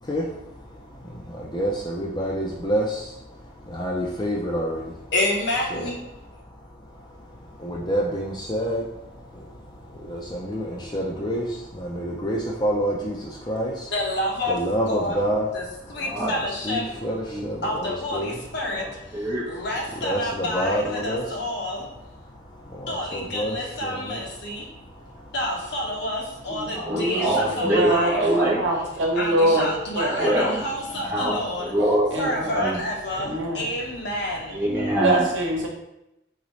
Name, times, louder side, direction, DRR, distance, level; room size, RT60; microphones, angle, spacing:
voice 1, 0.0-5.1 5.7-5.9 6.4-13.9 14.5-15.5 15.9-16.0 16.5-18.4 19.3-19.4 19.9-21.4 21.9-25.3, equal, 20° left, -2 dB, 0.5 m, -29 dB
voice 2, 5.1-6.0 13.9-14.6 14.9-15.2 15.5-16.9 17.6-18.9 19.5-21.9 22.9-24.7 25.3-28.2 29.1-31.7 32.2-34.6, left 1 dB, 60° left, -2 dB, 1.0 m, -29 dB
voice 3, 16.0-16.3 16.9-17.0 17.3-17.5 18.8-19.4 26.7-28.6 30.1-30.6 30.9-32.8 34.5-35.2, right 1 dB, 10° right, -7 dB, 1.1 m, -25 dB
voice 4, 26.5-30.4 32.1-32.8 33.1-33.6 35.0-35.7, right 1 dB, 75° right, 0 dB, 1.0 m, -24 dB
3.9 x 3.9 x 3.1 m, 0.87 s
head